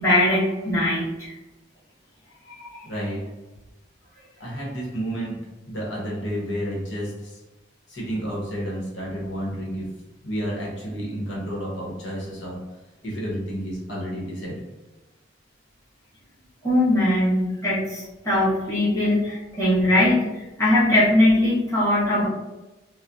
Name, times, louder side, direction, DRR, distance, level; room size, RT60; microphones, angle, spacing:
voice 1, 0.0-1.3 2.6-2.8 16.6-20.2 20.6-22.3, left 1 dB, 15° left, -10 dB, 1.3 m, -20 dB
voice 2, 2.8-3.2 4.4-5.4 5.7-7.3 7.9-9.9 10.2-12.6 13.0-14.6, equal, 75° left, -5 dB, 1.0 m, -30 dB
4.1 x 2.0 x 2.5 m, 1.1 s
head